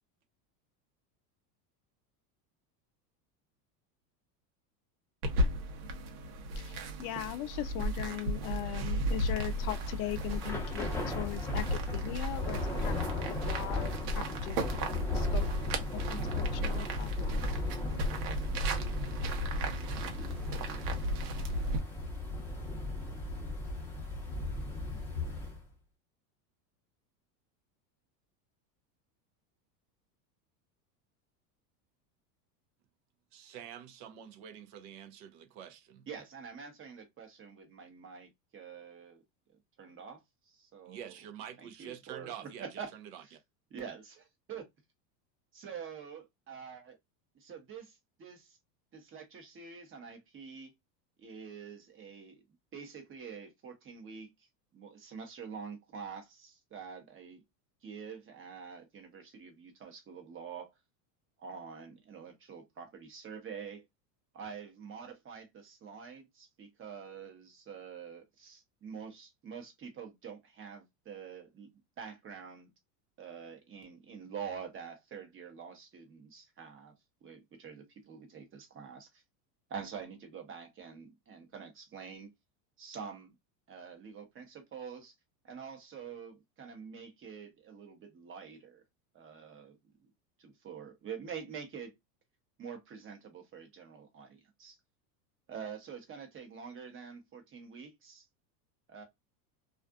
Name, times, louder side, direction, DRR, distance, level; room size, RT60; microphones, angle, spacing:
sound 1, 5.2-21.8, equal, 80° right, 0.9 m, -34 dB
voice 1, 6.6-13.2 13.5-14.8 15.1-15.5 15.9-17.4, left 14 dB, 60° left, 0.5 m, -40 dB
Thunder / Rain, 9.3-25.6, left 2 dB, 5° left, 0.7 m, -37 dB
voice 2, 33.3-36.0 40.9-42.7 42.9-43.4, right 9 dB, 55° right, 0.6 m, -47 dB
voice 3, 36.1-39.2 39.8-40.2 40.5-41.1 41.6-42.3 42.6-42.9 43.2-43.3 43.7-44.7 45.6-47.0 47.3-48.6 48.9-50.7 51.2-52.4 52.7-54.3 54.7-57.4 57.8-60.7 61.4-63.8 64.3-71.7 72.0-72.7 73.2-76.9 77.2-79.2 79.7-82.3 82.8-83.3 83.7-85.1 85.4-88.8 89.1-89.8 90.4-91.9 92.6-94.8 95.5-98.2 98.9-99.0, right 6 dB, 25° right, 0.9 m, -46 dB
2.4 x 2.4 x 2.2 m
supercardioid pair, 125°, 48 cm